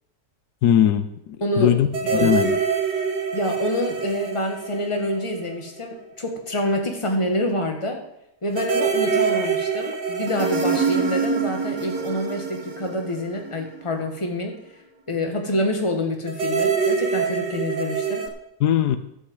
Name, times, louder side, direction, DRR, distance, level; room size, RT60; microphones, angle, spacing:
voice 1, 0.6-2.6 18.6-19.0, left 10 dB, 80° left, 11 dB, 1.2 m, -20 dB
voice 2, 1.4-2.3 3.3-8.0 8.4-14.5 15.1-18.2, left 1 dB, 20° left, 3 dB, 1.5 m, -27 dB
sound 1, 1.9-5.7 6.0-6.1 8.5-13.9 16.3-18.3, right 5 dB, 75° right, 1.8 m, -25 dB
11.5 x 5.8 x 7.9 m, 0.80 s
omnidirectional pair, 1.7 m